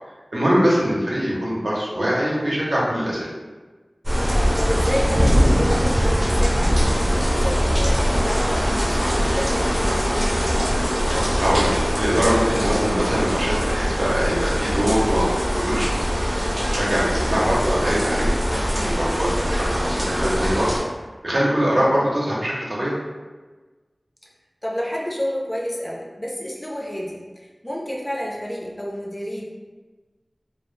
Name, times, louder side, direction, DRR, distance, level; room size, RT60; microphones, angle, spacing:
voice 1, 0.3-3.3 11.4-16.1 16.7-18.3 18.7-20.7 21.2-22.9, equal, 65° right, -6 dB, 0.6 m, -22 dB
sound 1, 4.0-20.8, equal, 35° right, 0.7 m, -21 dB
voice 2, 4.6-10.7 16.8-17.1 21.7-21.9 24.6-29.4, equal, 25° left, -3 dB, 0.4 m, -30 dB
2.0 x 2.0 x 3.1 m, 1.3 s
wide cardioid pair, 60°, 0 cm